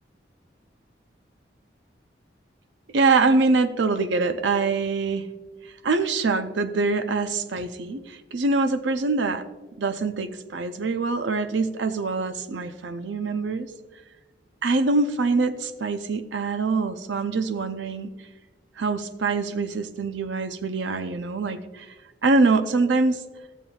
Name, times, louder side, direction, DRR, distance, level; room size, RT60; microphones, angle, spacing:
voice 1, 2.9-5.2 5.8-9.4 9.8-13.7 14.6-18.1 18.8-21.9 22.2-23.2, right 3 dB, 85° right, 10 dB, 0.5 m, -24 dB
15.0 x 7.2 x 2.3 m, 1.2 s
head